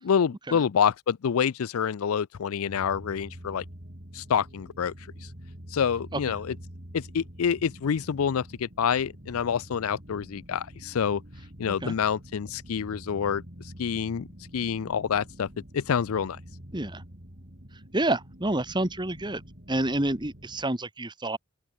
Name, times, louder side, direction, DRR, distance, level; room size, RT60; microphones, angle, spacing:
voice 1, 0.0-3.6 4.1-4.9 5.7-6.6 6.9-11.2 11.6-13.4 13.8-14.3 14.5-15.5 15.7-16.4, left 7 dB, 70° left, 0.4 m, -27 dB
sound 1, 2.7-20.6, equal, 45° right, 4.4 m, -46 dB
voice 2, 17.9-19.4 19.7-21.4, right 1 dB, 20° right, 1.7 m, -28 dB
open air
head